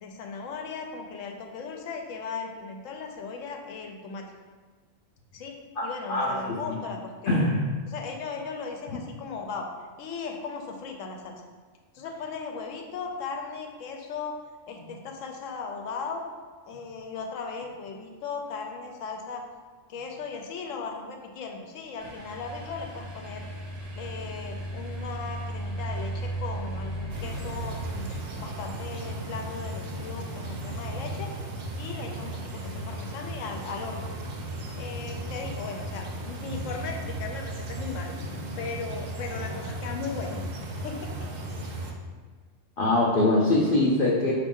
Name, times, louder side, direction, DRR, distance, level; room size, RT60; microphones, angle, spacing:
voice 1, 0.0-4.3 5.3-5.6 5.8-7.4 7.9-9.7 10.0-11.3 11.9-14.3 14.7-16.2 16.6-19.4 19.9-23.5 23.9-31.3 31.8-34.1 34.8-38.2 38.6-40.4 40.8-41.3, left 5 dB, 85° left, 3 dB, 1.0 m, -37 dB
voice 2, 5.8-6.8 7.3-7.6 42.8-44.3, left 2 dB, 60° left, -3 dB, 0.6 m, -23 dB
sound 1, 22.0-28.6, right 1 dB, 35° right, 0.8 m, -36 dB
sound 2, 27.1-41.9, right 1 dB, 55° right, 0.5 m, -35 dB
5.1 x 2.8 x 3.6 m, 1.4 s
omnidirectional pair, 1.3 m